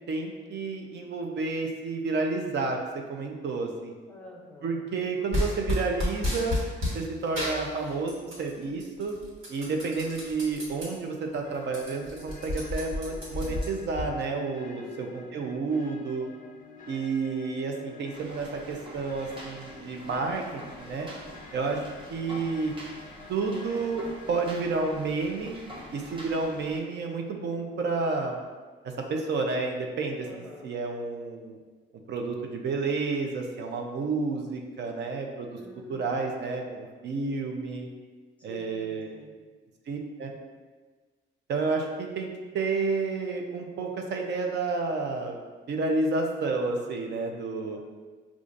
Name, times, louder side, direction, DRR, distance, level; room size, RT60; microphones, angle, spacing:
voice 1, 0.1-2.8 3.1-3.9 4.6-6.7 6.9-9.1 9.5-16.3 16.9-21.1 21.5-22.7 23.3-25.5 25.9-28.4 29.1-31.6 32.1-35.6 35.9-37.9 38.4-39.1 39.9-40.4 41.5-42.3 42.5-45.4 45.7-47.8, right 3 dB, 60° right, 2 dB, 0.5 m, -30 dB
voice 2, 4.1-4.9 14.8-16.0 30.2-30.7 35.6-36.5 38.4-39.4 47.7-47.8, left 2 dB, 5° left, -3 dB, 0.7 m, -49 dB
sound 1, 5.3-7.0 7.4-8.5 8.8-10.9 11.3-11.4 11.6-14.1, left 1 dB, 85° right, 1.4 m, -31 dB
sound 2, 11.4-24.9, left 5 dB, 45° left, 0.5 m, -50 dB
sound 3, 18.1-26.8, right 1 dB, 25° right, 0.8 m, -46 dB
5.0 x 2.4 x 2.5 m, 1.4 s
cardioid pair, 90°, 20 cm